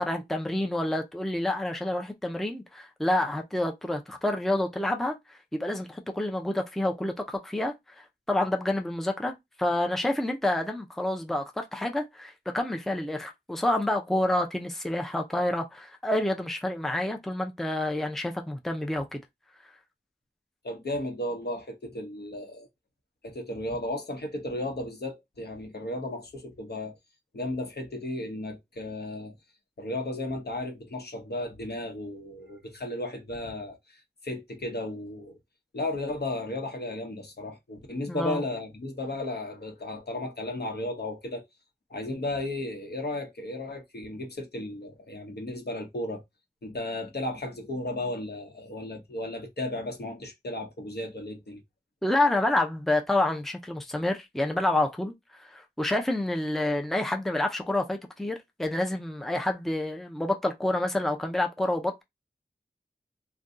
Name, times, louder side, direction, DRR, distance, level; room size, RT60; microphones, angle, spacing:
voice 1, 0.0-5.2 5.5-9.3 9.6-19.2 38.1-38.4 52.0-62.0, left 1 dB, ahead, 0.5 m, -28 dB
voice 2, 20.6-22.7 23.2-27.0 27.3-29.3 29.8-35.4 35.7-41.4 41.9-46.2 46.6-51.6, left 1 dB, 70° left, 0.9 m, -34 dB
2.6 x 2.2 x 3.6 m
wide cardioid pair, 60°, 18 cm